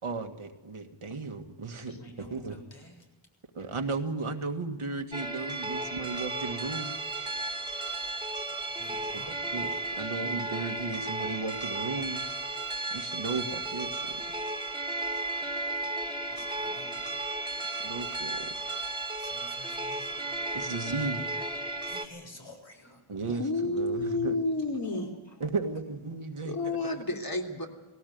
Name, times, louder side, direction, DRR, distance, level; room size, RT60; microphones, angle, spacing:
voice 1, 0.0-2.5 3.5-7.0 9.1-9.2 9.5-12.2 12.9-14.2 17.8-18.5 20.5-21.3 23.1-24.4 25.4-27.0, right 4 dB, 80° right, 5 dB, 2.1 m, -35 dB
voice 2, 2.0-3.1 8.7-9.4 16.2-17.1 19.2-20.4 21.8-23.0 24.8-25.3, left 1 dB, 60° left, 2 dB, 7.2 m, -51 dB
sound 1, 5.1-22.1, right 2 dB, 10° right, 2.4 m, -34 dB
voice 3, 23.3-25.1 26.4-27.7, left 2 dB, 45° left, 2 dB, 3.5 m, -30 dB
19.0 x 17.5 x 9.5 m, 1.2 s
wide cardioid pair, 60°, 49 cm